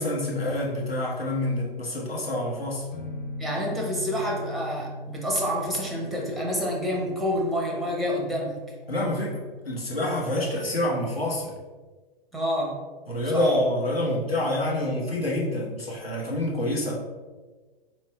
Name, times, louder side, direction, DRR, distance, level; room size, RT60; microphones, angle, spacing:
voice 1, 0.0-2.9 8.9-11.5 13.1-16.9, left 1 dB, 85° left, -4 dB, 1.4 m, -27 dB
sound 1, 2.9-10.5, left 1 dB, 60° left, 1.1 m, -40 dB
voice 2, 3.4-8.6 12.3-12.8 13.3-13.5, equal, ahead, -2 dB, 0.5 m, -28 dB
4.4 x 3.1 x 3.3 m, 1.3 s
figure-of-eight pair, 110°, 29 cm